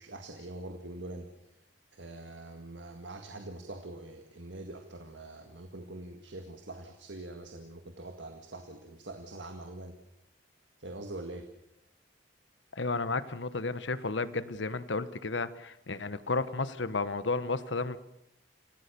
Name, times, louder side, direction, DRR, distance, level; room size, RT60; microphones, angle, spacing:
voice 1, 0.0-1.5 1.9-9.9 10.8-11.5, right 2 dB, 75° right, 5 dB, 2.0 m, -44 dB
voice 2, 12.8-18.0, left 3 dB, 70° left, 14 dB, 1.2 m, -32 dB
27.0 x 17.5 x 6.9 m, 0.84 s
head